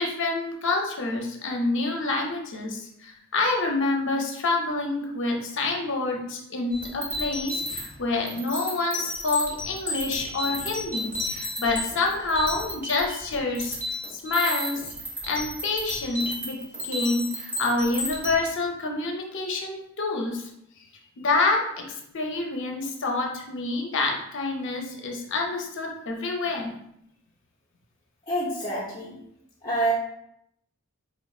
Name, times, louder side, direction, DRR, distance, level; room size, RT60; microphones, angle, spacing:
voice 1, 0.0-13.8 14.1-14.8 15.3-16.6 16.8-20.5 21.2-26.7, left 3 dB, 60° left, 1 dB, 0.6 m, -27 dB
sound 1, 6.7-18.3, left 1 dB, 10° right, 1.1 m, -32 dB
voice 2, 28.3-29.2 29.6-29.9, right 1 dB, 20° left, -6 dB, 0.7 m, -27 dB
4.4 x 3.1 x 2.4 m, 0.74 s
head